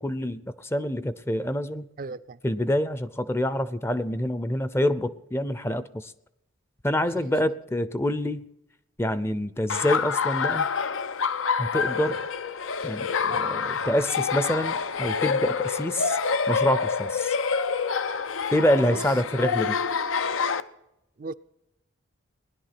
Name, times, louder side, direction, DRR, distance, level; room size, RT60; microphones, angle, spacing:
voice 1, 0.0-1.9 2.4-6.1 6.8-8.5 9.0-10.7 11.6-12.3 12.8-16.2 16.5-17.4 18.5-19.8, left 1 dB, 15° left, 0.5 m, -26 dB
voice 2, 2.0-2.4 7.1-7.2 18.9-19.1 21.2-21.3, right 3 dB, 45° right, 0.4 m, -36 dB
Laughter, 9.7-20.6, left 5 dB, 85° left, 0.7 m, -27 dB
19.5 x 11.0 x 5.9 m
head